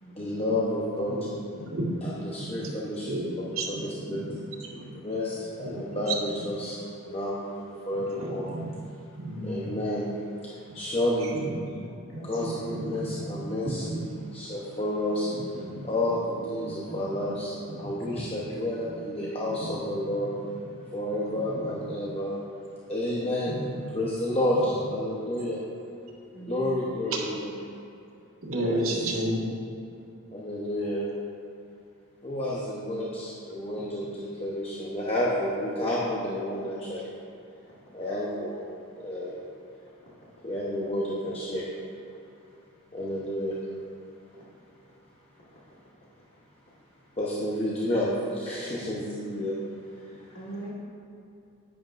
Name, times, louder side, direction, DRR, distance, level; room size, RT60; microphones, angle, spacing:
voice 1, 0.1-1.3 2.0-3.2 3.5-4.3 5.0-8.5 9.4-10.1 10.4-11.4 12.2-14.0 14.3-20.3 20.9-22.3 22.9-23.6 23.9-25.6 26.5-27.5 28.6-29.0 30.3-31.1 32.2-37.2 37.9-38.7 39.0-39.4 40.4-41.7 42.9-43.6 47.2-50.7, left 1 dB, 25° left, -6 dB, 0.9 m, -30 dB
voice 2, 1.1-1.9 2.4-2.7 3.0-4.4 4.7-4.9 5.6-6.4 7.1-7.2 7.9-8.7 9.1-9.8 11.2-11.8 12.1-14.1 15.5-15.9 16.4-17.3 17.6-18.1 19.5-19.9 20.2-20.4 21.4-21.9 23.5-24.0 24.6-24.9 28.4-29.5, right 1 dB, 85° right, -4 dB, 1.8 m, -34 dB
voice 3, 11.8-12.6 13.1-13.2 15.8-15.9 16.7-16.9 26.3-26.8 50.3-50.7, right 1 dB, 65° left, -8 dB, 2.0 m, -43 dB
10.5 x 9.6 x 2.6 m, 2.7 s
head